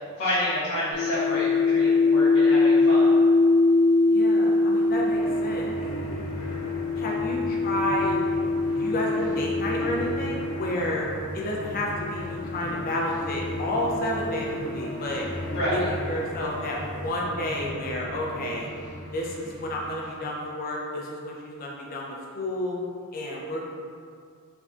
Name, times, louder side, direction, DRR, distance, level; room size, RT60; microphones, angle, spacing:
voice 1, 0.2-3.1 15.5-15.9, equal, 55° left, -14 dB, 0.8 m, -28 dB
sound 1, 0.9-11.3 12.2-15.9, left 3 dB, 65° right, 0.8 m, -24 dB
voice 2, 4.1-5.7 7.0-8.2 8.8-11.0 11.3-15.3 15.7-18.7 19.1-22.8 23.1-23.7, left 1 dB, 40° left, -2 dB, 0.4 m, -31 dB
sound 2, 4.5-20.3, left 1 dB, 85° left, 0.8 m, -37 dB
3.4 x 2.2 x 2.5 m, 2.2 s
head